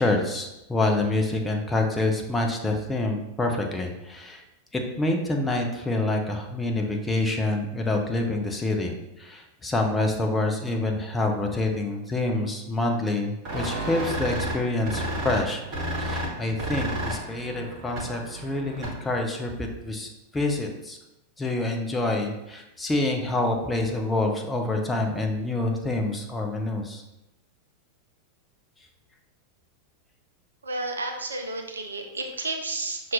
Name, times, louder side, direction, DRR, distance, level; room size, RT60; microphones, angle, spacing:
voice 1, 0.0-4.4 4.7-15.6 16.0-21.0 21.4-27.0, left 2 dB, 10° left, 2 dB, 0.6 m, -27 dB
sound 1, 13.4-19.2, right 1 dB, 40° right, 1.2 m, -32 dB
voice 2, 30.6-33.1, right 2 dB, 75° right, 3 dB, 0.5 m, -31 dB
5.7 x 2.6 x 3.1 m, 0.92 s
figure-of-eight pair, 90°, 0 cm